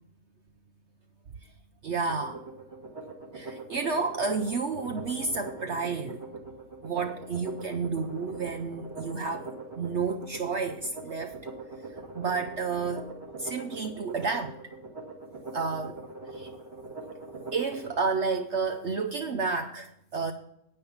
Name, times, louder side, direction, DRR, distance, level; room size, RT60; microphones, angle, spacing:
voice 1, 1.8-2.4 3.3-6.2 6.8-9.5 9.8-11.3 11.9-13.1 13.4-14.6 15.5-16.0 16.3-16.5 17.5-20.3, right 4 dB, 55° right, 7 dB, 0.8 m, -31 dB
sound 1, 2.0-18.0, right 3 dB, 40° right, 1.9 m, -42 dB
9.7 x 8.6 x 5.8 m, 0.76 s
omnidirectional pair, 1.7 m